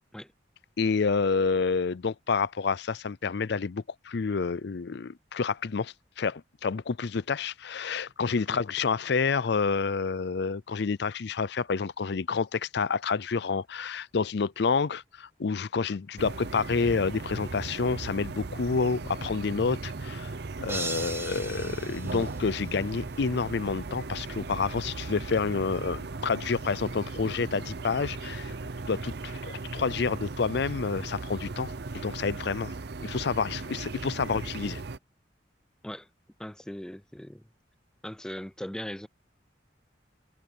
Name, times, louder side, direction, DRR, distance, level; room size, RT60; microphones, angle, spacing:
voice 1, 0.8-20.3 20.6-28.5 28.9-32.7 33.0-34.8, left 5 dB, 65° left, 0.5 m, -29 dB
sound 1, 16.2-35.0, right 3 dB, 60° right, 0.7 m, -37 dB
sound 2, 20.7-23.0, right 3 dB, 15° right, 1.5 m, -38 dB
voice 2, 36.4-37.4 38.0-39.1, equal, 5° left, 0.4 m, -39 dB
head